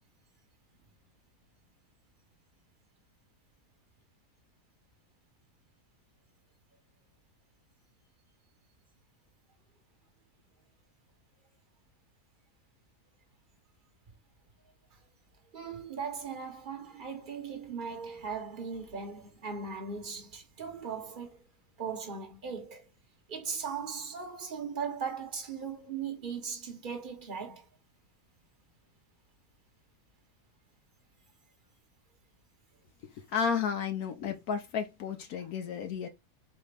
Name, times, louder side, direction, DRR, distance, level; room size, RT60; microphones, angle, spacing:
voice 1, 15.5-21.4 21.8-22.9 23.3-27.7, right 6 dB, 35° right, 1.1 m, -38 dB
voice 2, 33.1-36.1, left 7 dB, 75° left, 1.2 m, -32 dB
4.2 x 3.3 x 3.3 m
omnidirectional pair, 1.6 m